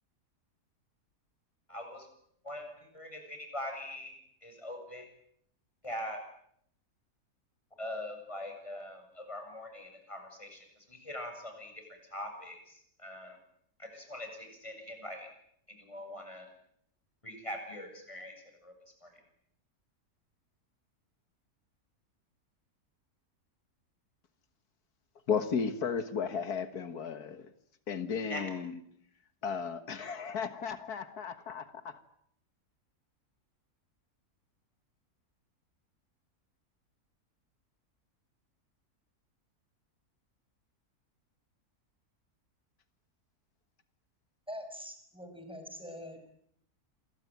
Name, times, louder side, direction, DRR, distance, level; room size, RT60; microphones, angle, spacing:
voice 1, 1.7-2.1 2.4-4.1 4.4-5.1 5.8-6.2 7.8-11.8 12.1-13.4 13.8-15.3 15.9-16.5 17.2-18.3 18.6-18.7 19.0-19.1 28.3-28.4, left 1 dB, 20° left, 8.0 m, -42 dB
voice 2, 25.3-27.5 27.9-28.8 29.4-32.0, left 6 dB, 80° left, 2.0 m, -34 dB
voice 3, 44.5-46.3, equal, 5° right, 6.1 m, -44 dB
28.0 x 23.0 x 9.3 m
omnidirectional pair, 1.6 m